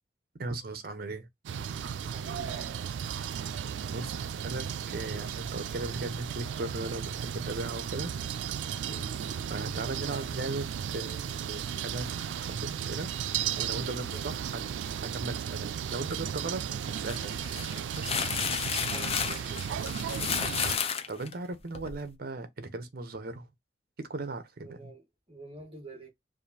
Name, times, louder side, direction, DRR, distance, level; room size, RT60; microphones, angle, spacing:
voice 1, 0.4-1.3 3.9-8.1 9.5-12.1 12.4-13.1 13.6-14.6 15.0-17.4 18.0-18.2 20.6-23.5 24.0-24.9, right 2 dB, 55° right, 0.8 m, -37 dB
sound 1, 1.5-20.8, right 8 dB, 85° right, 0.3 m, -35 dB
voice 2, 2.0-2.8 8.8-9.1 14.1-14.4 16.1-16.2 18.9-20.0 24.6-26.1, right 2 dB, 30° right, 1.7 m, -48 dB
sound 2, 16.9-22.0, left 7 dB, 35° left, 0.5 m, -32 dB
5.0 x 2.5 x 2.7 m
head